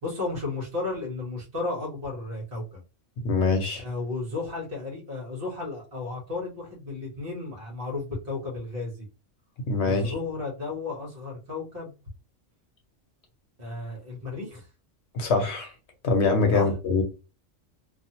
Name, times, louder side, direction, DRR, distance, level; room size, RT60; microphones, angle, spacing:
voice 1, 0.0-2.8 3.8-9.1 9.8-11.9 13.6-14.7 16.5-16.7, left 3 dB, 50° right, 1.3 m, -33 dB
voice 2, 3.2-3.8 9.6-10.1 15.1-15.7 16.0-17.0, left 4 dB, 65° left, 1.0 m, -23 dB
2.7 x 2.4 x 2.8 m
omnidirectional pair, 1.3 m